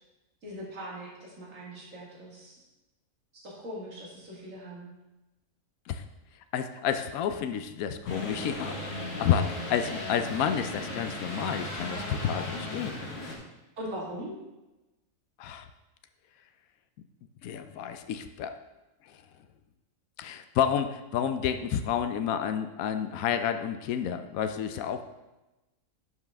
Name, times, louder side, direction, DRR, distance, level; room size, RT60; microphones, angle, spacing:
voice 1, 0.4-2.6 3.3-4.9 13.8-14.3, equal, 70° right, -4 dB, 2.3 m, -40 dB
voice 2, 6.5-13.0 15.4-15.7 17.4-18.5 20.2-25.0, left 8 dB, 90° left, 9 dB, 1.0 m, -30 dB
sound 1, 8.1-13.3, left 2 dB, 65° left, 2.0 m, -36 dB
11.0 x 5.5 x 3.4 m, 1.0 s
omnidirectional pair, 1.4 m